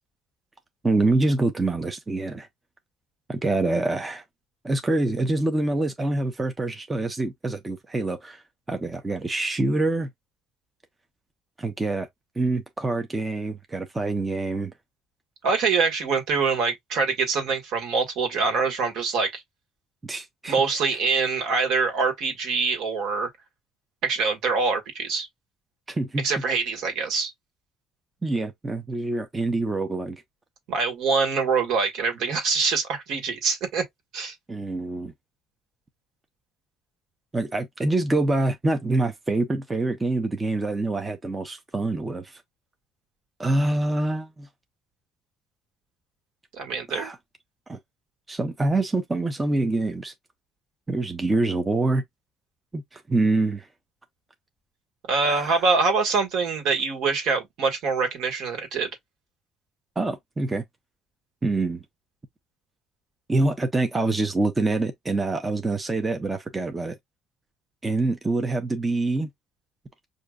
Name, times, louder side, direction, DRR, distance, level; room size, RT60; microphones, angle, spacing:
voice 1, 0.8-2.5 3.3-4.2 4.6-8.4 8.7-10.1 11.6-12.1 12.4-14.7 20.0-20.6 25.9-26.3 28.2-30.2 34.5-35.1 37.3-42.4 43.4-44.5 46.9-47.2 47.7-47.8 48.3-50.1 50.9-52.0 52.7-53.7 55.2-55.6 60.0-60.6 61.4-61.8 63.3-67.0 67.8-69.3, right 2 dB, 15° right, 0.6 m, -25 dB
voice 2, 15.4-19.4 20.5-23.3 24.0-25.3 26.2-27.3 30.7-33.8 34.1-34.3 46.5-47.1 55.1-58.9, right 4 dB, 70° right, 1.6 m, -24 dB
6.4 x 2.6 x 2.3 m
cardioid pair, 155°, 0 cm